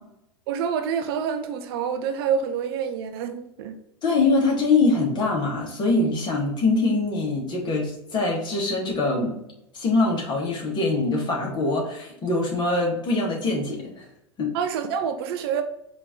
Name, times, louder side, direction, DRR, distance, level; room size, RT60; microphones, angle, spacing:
voice 1, 0.5-3.8 14.5-15.6, right 7 dB, 55° right, 0.5 m, -27 dB
voice 2, 4.0-9.4 9.7-14.1 14.4-14.5, left 3 dB, 30° left, 1.7 m, -23 dB
4.9 x 2.9 x 3.7 m
figure-of-eight pair, 85°, 15 cm